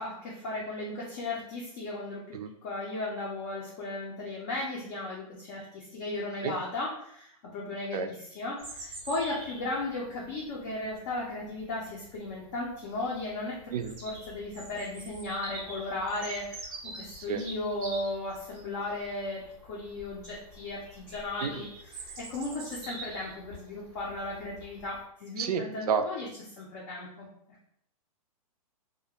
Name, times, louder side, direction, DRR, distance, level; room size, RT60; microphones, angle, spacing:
voice 1, 0.0-13.7 14.0-26.3 26.6-27.3, left 2 dB, 30° left, -5 dB, 0.4 m, -36 dB
Bird vocalization bird call bird song, 8.6-25.0, right 2 dB, 20° right, 0.6 m, -46 dB
voice 2, 25.4-26.0, right 7 dB, 85° right, 7 dB, 0.4 m, -30 dB
2.4 x 2.1 x 2.8 m, 0.71 s
hypercardioid pair, 160°, 19 cm